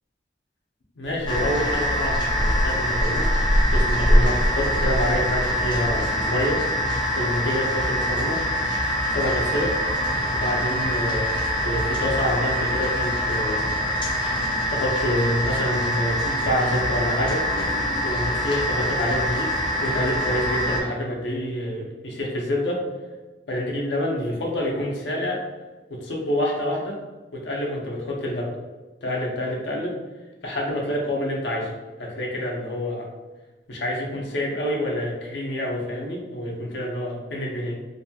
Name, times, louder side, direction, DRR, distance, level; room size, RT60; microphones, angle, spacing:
voice 1, 1.0-3.3 3.7-6.6 7.2-8.4 9.1-9.8 10.3-11.3 11.6-13.7 14.7-17.5 18.0-19.5 19.8-22.8 23.5-25.4 25.9-27.0 27.3-28.5 29.0-29.9 30.4-31.7 32.0-33.1 33.7-37.8, left 1 dB, 80° left, -1 dB, 0.6 m, -27 dB
sound 1, 1.0-6.3, equal, 75° right, 0.8 m, -24 dB
sound 2, 1.3-20.8, equal, 25° left, 0.5 m, -25 dB
Trumpet, 8.9-14.2, right 2 dB, 40° right, 0.4 m, -41 dB
2.6 x 2.2 x 2.7 m, 1.2 s
head